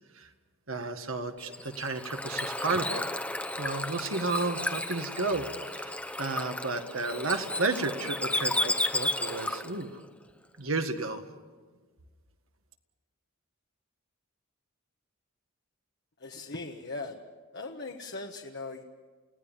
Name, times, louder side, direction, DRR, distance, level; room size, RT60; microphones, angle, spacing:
voice 1, 0.7-3.0 3.6-10.0 10.6-11.2, right 3 dB, 70° right, 6 dB, 1.8 m, -32 dB
Bird / Water, 1.4-9.8, left 1 dB, 5° left, 1.0 m, -33 dB
voice 2, 16.2-17.2 17.5-18.8, left 3 dB, 55° left, 2 dB, 1.3 m, -39 dB
29.5 x 17.5 x 7.3 m, 1.4 s
head